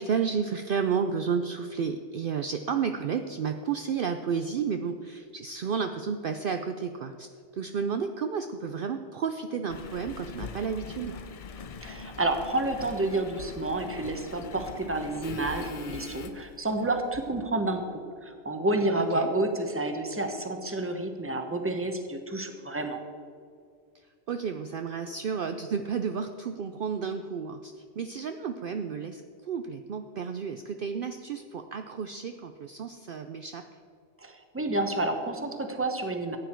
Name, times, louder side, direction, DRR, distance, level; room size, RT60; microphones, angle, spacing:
voice 1, 0.0-11.2 19.0-19.3 24.3-33.7, right 6 dB, 60° right, 7 dB, 0.7 m, -32 dB
Engine, 9.7-17.6 18.2-18.3, left 5 dB, 45° left, 0.5 m, -43 dB
voice 2, 11.8-23.0 34.2-36.4, right 2 dB, 10° right, 5 dB, 1.0 m, -30 dB
14.5 x 9.3 x 4.5 m, 2.2 s
omnidirectional pair, 1.2 m